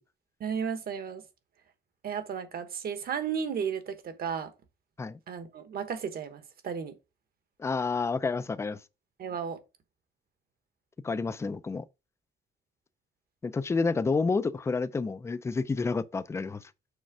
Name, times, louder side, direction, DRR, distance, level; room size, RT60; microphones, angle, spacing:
voice 1, 0.4-1.2 2.0-4.5 5.3-7.0 9.2-9.6, right 7 dB, 55° right, 1.2 m, -34 dB
voice 2, 7.6-8.8 11.0-11.8 13.4-16.6, left 4 dB, 15° left, 0.3 m, -29 dB
6.4 x 4.3 x 4.8 m
wide cardioid pair, 175°, 18 cm